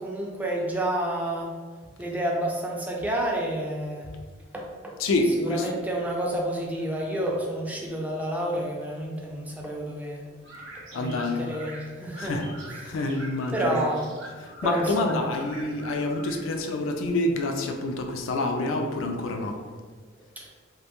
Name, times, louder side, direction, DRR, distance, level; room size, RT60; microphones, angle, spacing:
voice 1, 0.0-1.5 2.0-4.1 4.5-10.2 10.9-12.9 13.5-14.1 14.6-15.3 20.4-20.5, right 1 dB, 10° right, -2 dB, 0.3 m, -30 dB
voice 2, 5.0-5.7 7.8-7.9 10.9-11.5 12.2-12.5 12.8-13.8 14.4-19.6, left 2 dB, 75° left, 4 dB, 0.3 m, -27 dB
sound 1, 10.4-18.9, right 1 dB, 65° right, 0.7 m, -45 dB
2.5 x 2.2 x 2.8 m, 1.5 s
head